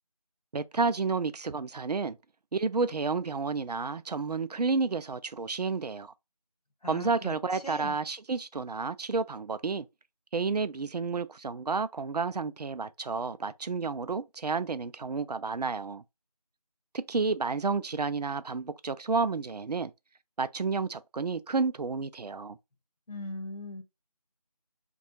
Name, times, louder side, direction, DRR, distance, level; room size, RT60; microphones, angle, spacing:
voice 1, 0.5-2.2 2.5-6.1 6.9-9.9 10.3-16.0 16.9-19.9 20.4-22.6, right 4 dB, 80° right, 0.4 m, -31 dB
voice 2, 6.8-7.3 7.6-8.0 23.1-23.8, left 2 dB, 75° left, 0.9 m, -39 dB
2.6 x 2.3 x 2.8 m
figure-of-eight pair, 180°, 20 cm